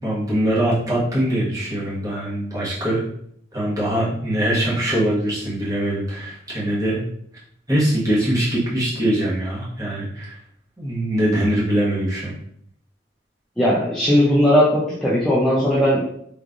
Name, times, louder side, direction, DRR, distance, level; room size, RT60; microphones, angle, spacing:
voice 1, 0.0-3.0 3.5-7.0 7.7-10.4 10.8-12.3, right 1 dB, 20° right, -7 dB, 1.2 m, -22 dB
voice 2, 13.6-16.0, equal, 5° left, -8 dB, 0.5 m, -17 dB
3.5 x 3.2 x 2.5 m, 0.69 s
head